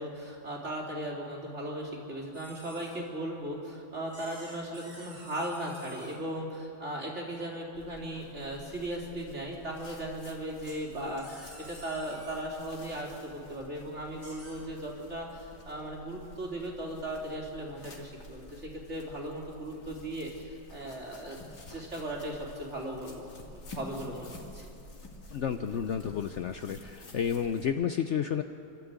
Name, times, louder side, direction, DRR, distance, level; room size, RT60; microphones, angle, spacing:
voice 1, 0.0-21.4 21.7-24.7, right 1 dB, 35° right, -2 dB, 3.7 m, -37 dB
sound 1, 2.3-3.0 4.1-6.2 10.6-12.3 14.2-14.5, right 1 dB, 75° right, 6.0 m, -50 dB
sound 2, 7.7-27.7, left 2 dB, 60° left, 2.9 m, -50 dB
voice 2, 25.3-28.4, left 8 dB, 85° left, 8 dB, 0.6 m, -31 dB
28.5 x 12.5 x 8.2 m, 2.7 s
omnidirectional pair, 2.0 m